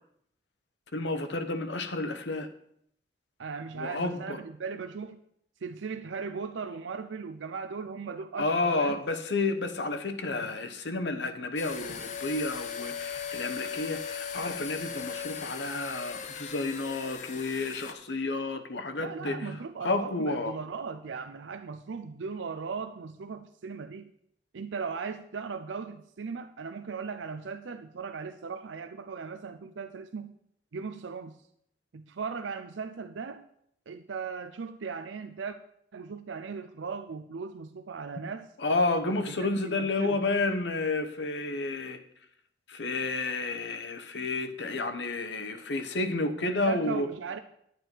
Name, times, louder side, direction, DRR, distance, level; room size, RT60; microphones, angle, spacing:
voice 1, 0.9-2.5 3.7-4.4 8.4-19.6 19.8-20.6 38.6-42.0 42.7-47.1, left 3 dB, 75° left, 9 dB, 1.0 m, -31 dB
voice 2, 3.4-5.2 5.6-9.0 19.0-24.1 24.5-30.3 30.7-31.4 31.9-33.4 33.9-35.6 35.9-38.5 39.3-40.3 46.4-47.4, right 5 dB, 90° right, 8 dB, 0.5 m, -38 dB
sound 1, 11.6-17.9, left 6 dB, 40° left, 0.7 m, -38 dB
11.0 x 8.4 x 4.5 m, 0.70 s
head